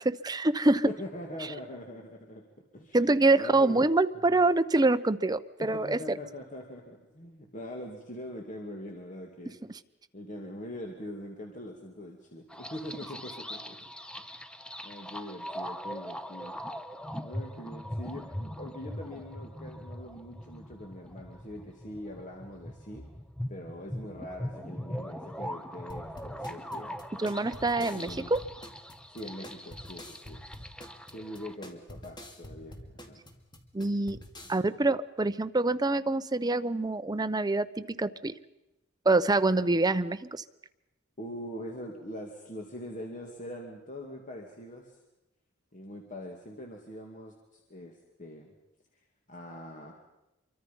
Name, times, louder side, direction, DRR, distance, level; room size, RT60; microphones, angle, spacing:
voice 1, 0.0-0.8 2.9-6.2 27.2-28.4 33.7-34.2 34.5-38.3 39.0-40.4, right 2 dB, 20° right, 11 dB, 0.7 m, -26 dB
voice 2, 0.8-2.4 2.7-3.0 3.3-3.9 4.3-4.4 5.6-9.5 10.1-13.9 14.2-14.3 14.8-16.6 17.2-23.0 23.5-27.0 27.8-28.3 29.1-30.6 31.1-32.8 33.1-33.2 34.4-34.6 41.2-45.0 45.7-48.5 49.3-49.9, left 1 dB, 40° left, 1 dB, 2.6 m, -43 dB
sound 1, 12.5-31.5, equal, 5° left, 0.9 m, -41 dB
sound 2, 25.9-34.6, left 1 dB, 20° left, 2.3 m, -47 dB
27.0 x 24.0 x 5.5 m, 0.94 s
head